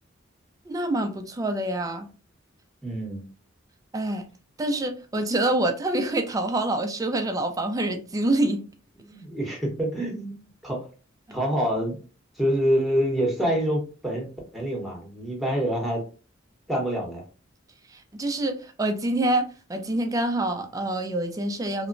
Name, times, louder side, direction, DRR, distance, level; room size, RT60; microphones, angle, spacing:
voice 1, 0.7-2.1 3.9-4.2 4.6-8.6 18.1-21.9, right 1 dB, 15° right, 0.3 m, -26 dB
voice 2, 2.8-3.2 9.0-10.9 11.3-12.0 12.4-14.3 14.5-16.0 16.7-17.2, equal, ahead, 0.9 m, -26 dB
2.8 x 2.1 x 2.5 m
head